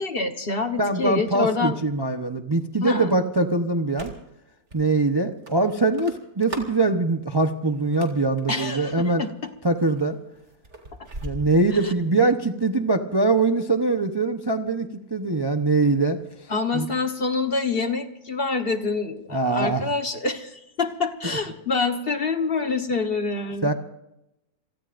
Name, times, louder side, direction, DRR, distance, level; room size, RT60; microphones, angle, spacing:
voice 1, 0.0-1.8 2.8-3.2 8.5-9.5 11.8-11.9 16.5-23.7, left 4 dB, 45° left, 7 dB, 1.3 m, -26 dB
voice 2, 0.8-4.1 4.7-9.2 9.6-10.2 11.2-16.2 16.7-16.9 19.3-19.9 23.6-23.7, right 3 dB, 20° right, 6 dB, 0.7 m, -22 dB
sound 1, 3.9-4.4 4.7-4.8 5.5-6.8 7.7-8.4 9.1-9.5 9.8-12.0, right 1 dB, 50° right, 3.0 m, -39 dB
28.0 x 18.5 x 2.6 m, 0.87 s
omnidirectional pair, 1.5 m